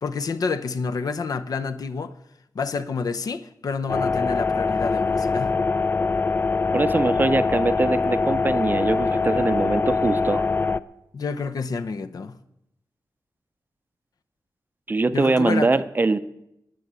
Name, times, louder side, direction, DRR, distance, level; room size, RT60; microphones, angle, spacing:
voice 1, 0.0-2.1 2.5-5.6 11.1-12.4 15.1-15.7, left 4 dB, 65° left, 0.7 m, -28 dB
sound 1, 3.9-10.8, left 4 dB, 30° left, 0.4 m, -23 dB
voice 2, 6.7-10.5 14.9-16.2, right 3 dB, 30° right, 0.6 m, -22 dB
12.0 x 10.0 x 8.2 m
wide cardioid pair, 165°, 7 cm